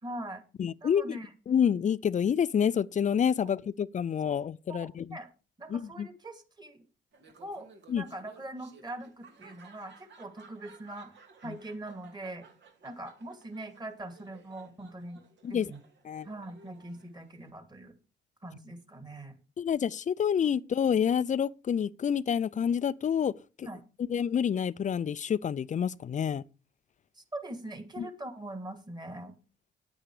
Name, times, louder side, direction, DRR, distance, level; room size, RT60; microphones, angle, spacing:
voice 1, 0.0-0.4 0.8-1.3 3.4-3.5 4.7-5.3 5.6-6.8 7.4-7.7 7.9-11.2 11.4-12.5 12.8-15.2 15.5-15.8 16.2-17.9 18.4-19.3 23.6-23.8 27.2-29.3, right 1 dB, 20° right, 2.5 m, -42 dB
voice 2, 0.6-1.2 1.5-5.1 5.7-6.1 7.9-8.0 11.5-11.6 15.4-15.7 16.1-16.3 19.6-23.3 23.6-23.7 24.1-26.4 28.0-28.1, left 8 dB, 40° left, 0.5 m, -28 dB
Laughter, 7.1-17.5, right 4 dB, 65° right, 2.6 m, -57 dB
9.6 x 9.0 x 4.9 m
cardioid pair, 90°, 20 cm